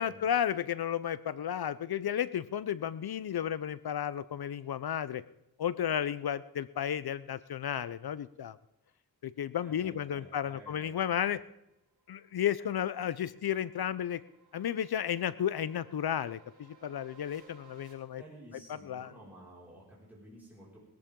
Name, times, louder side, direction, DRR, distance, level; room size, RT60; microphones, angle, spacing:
voice 1, 0.0-5.2 5.6-8.6 9.2-11.4 12.1-14.2 14.5-18.2 18.7-19.1, left 9 dB, 65° left, 17 dB, 0.6 m, -33 dB
voice 2, 9.6-11.2 18.1-20.8, right 1 dB, 5° right, -7 dB, 5.2 m, -53 dB
sound 1, 11.7-17.9, right 5 dB, 70° right, 5.9 m, -62 dB
20.0 x 14.0 x 3.7 m, 0.86 s
wide cardioid pair, 100°, 40 cm